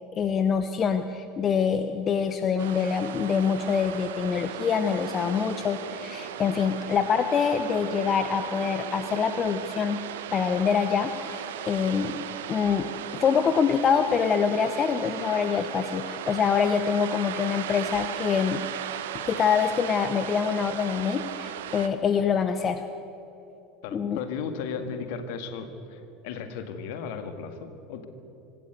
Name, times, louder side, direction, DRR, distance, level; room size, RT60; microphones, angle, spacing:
voice 1, 0.2-10.0 10.3-12.2 12.5-12.9 13.1-18.6 19.2-22.8 23.9-24.2, left 6 dB, 35° left, 9 dB, 1.0 m, -25 dB
sound 1, 2.6-21.9, right 10 dB, 65° right, 1.2 m, -37 dB
voice 2, 23.8-28.1, left 6 dB, 60° left, 8 dB, 2.0 m, -35 dB
25.0 x 13.5 x 8.1 m, 3.0 s
figure-of-eight pair, 75°, 0 cm